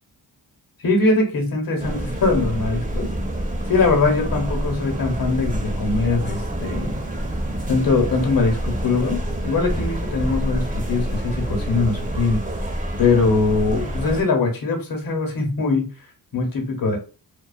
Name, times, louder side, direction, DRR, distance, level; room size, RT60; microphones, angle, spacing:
voice 1, 0.8-3.1 3.7-7.0 7.7-12.4 13.0-15.9 16.3-17.0, left 3 dB, 50° left, 3 dB, 0.9 m, -21 dB
sound 1, 1.8-14.2, right 1 dB, 15° right, 0.6 m, -27 dB
2.3 x 2.2 x 2.3 m, 0.34 s
cardioid pair, 40°, 46 cm